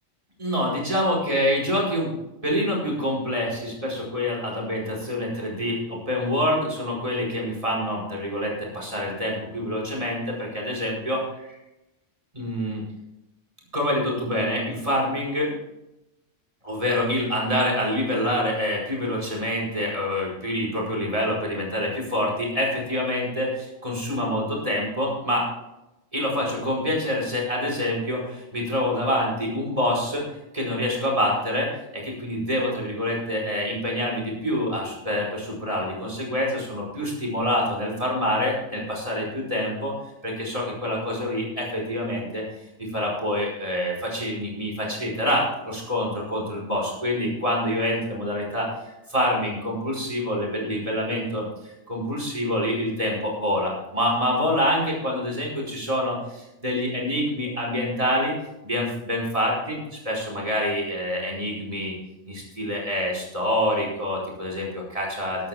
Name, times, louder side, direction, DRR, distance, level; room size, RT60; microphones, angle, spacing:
voice 1, 0.4-2.1 2.4-11.5 12.3-12.8 13.7-15.6 16.6-25.5 26.1-30.2 30.5-39.9 40.2-42.4 42.8-58.3 58.6-61.9 62.3-65.5, equal, 30° right, -3 dB, 5.0 m, -26 dB
14.0 x 11.5 x 3.6 m, 0.92 s
omnidirectional pair, 1.2 m